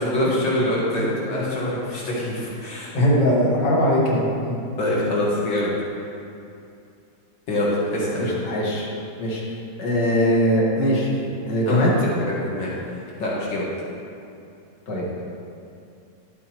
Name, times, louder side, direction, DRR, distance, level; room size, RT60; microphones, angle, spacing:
voice 1, 0.0-2.9 4.8-5.7 7.5-8.4 11.6-11.9 12.2-12.7 13.2-13.7, left 1 dB, 85° left, -5 dB, 2.2 m, -24 dB
voice 2, 0.9-1.5 2.9-4.6 8.2-8.9 9.2-9.4 9.8-11.9 14.9-15.2, equal, 65° left, -5 dB, 2.2 m, -21 dB
12.0 x 8.3 x 3.0 m, 2.6 s
omnidirectional pair, 2.0 m